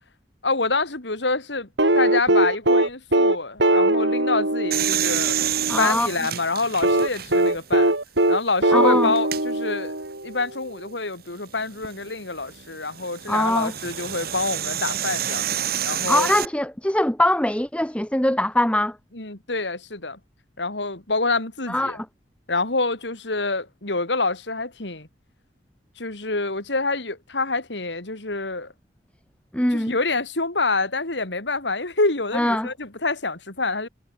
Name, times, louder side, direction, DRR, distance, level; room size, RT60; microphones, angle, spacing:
voice 1, 0.4-1.7 1.9-5.4 5.8-7.9 8.3-10.0 10.2-15.4 15.8-16.3 19.1-20.2 20.6-22.0 22.5-25.1 26.0-28.7 29.7-33.9, left 3 dB, 75° left, 3.6 m, -26 dB
sound 1, 1.8-5.9 6.8-10.4 11.8-11.9, right 1 dB, 80° right, 5.2 m, -21 dB
sound 2, 4.7-7.6 8.2-8.3 9.2-9.4 11.6-16.5, right 11 dB, 60° right, 1.7 m, -29 dB
voice 2, 5.7-6.1 8.7-9.1 13.3-13.7 16.1-19.0 21.7-22.1 29.5-29.9 32.3-32.7, left 1 dB, 5° left, 1.7 m, -22 dB
head